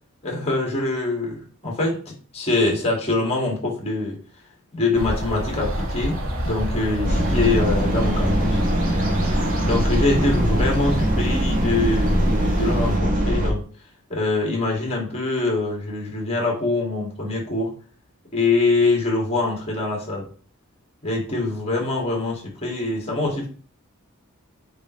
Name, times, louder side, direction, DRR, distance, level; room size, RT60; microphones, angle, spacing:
voice 1, 0.2-2.0 2.3-4.2 4.7-6.2 6.4-8.6 9.6-13.6 14.1-17.7 18.3-20.3 21.0-23.5, left 2 dB, 30° left, 0 dB, 2.0 m, -24 dB
sound 1, 4.9-13.0, equal, 70° right, 1.6 m, -29 dB
sound 2, 7.0-13.5, right 1 dB, 35° right, 1.2 m, -22 dB
8.6 x 3.6 x 3.1 m, 0.41 s
head